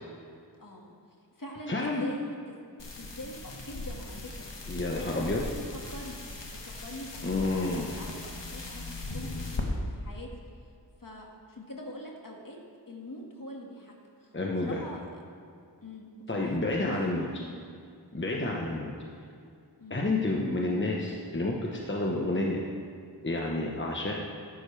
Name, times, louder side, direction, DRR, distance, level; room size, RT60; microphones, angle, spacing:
voice 1, 0.6-0.9 1.4-2.6 3.0-5.6 5.9-6.3 6.8-10.3 10.6-10.7 11.0-12.6 12.9-13.9 14.2-15.2 15.8-17.6 18.3-18.5 19.8-20.1, left 1 dB, 50° left, -1 dB, 2.0 m, -44 dB
voice 2, 1.7-2.0 4.7-5.4 7.2-7.9 14.3-14.8 16.3-17.3 18.1-18.9 19.9-22.6 23.2-24.1, left 2 dB, 25° left, -2 dB, 1.1 m, -29 dB
sound 1, 2.8-9.6, left 2 dB, 85° left, 1.5 m, -39 dB
14.0 x 11.5 x 3.4 m, 2.3 s
wide cardioid pair, 65°, 42 cm